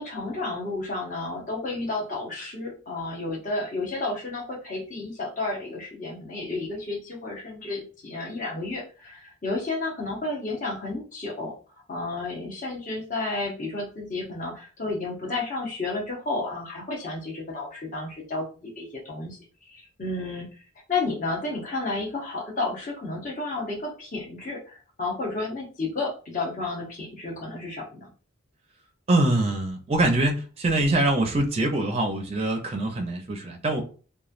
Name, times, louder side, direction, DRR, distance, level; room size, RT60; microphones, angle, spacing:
voice 1, 0.0-11.5 11.9-19.4 19.7-20.5 20.9-28.1, left 2 dB, 40° left, -3 dB, 0.8 m, -32 dB
voice 2, 29.1-33.8, right 2 dB, 30° right, 3 dB, 0.4 m, -24 dB
3.0 x 2.2 x 2.4 m, 0.37 s
head